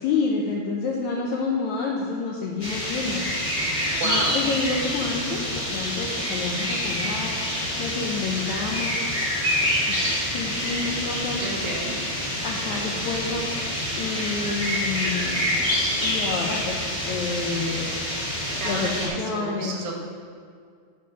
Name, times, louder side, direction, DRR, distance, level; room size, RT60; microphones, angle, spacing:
voice 1, 0.0-9.2 9.9-11.4 12.4-13.6 13.9-15.5 16.0-16.8 17.1-17.9 18.6-19.8, left 4 dB, 80° left, -1 dB, 1.7 m, -29 dB
sound 1, 2.6-19.1, left 1 dB, 20° left, 0.8 m, -27 dB
voice 2, 4.0-4.4 11.4-12.0 18.6-19.9, right 3 dB, 80° right, -1 dB, 3.0 m, -31 dB
10.5 x 5.6 x 5.2 m, 2.1 s
omnidirectional pair, 4.1 m